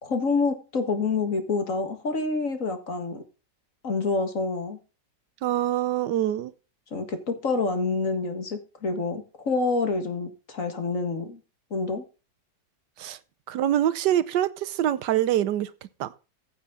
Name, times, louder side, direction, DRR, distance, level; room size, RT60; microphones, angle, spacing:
voice 1, 0.0-3.2 3.8-4.8 6.9-11.4 11.7-12.0, left 3 dB, 50° left, 2.1 m, -27 dB
voice 2, 5.4-6.5 13.0-13.2 13.5-15.7 16.0-16.1, right 12 dB, 75° right, 1.3 m, -25 dB
15.5 x 8.5 x 3.8 m
omnidirectional pair, 1.9 m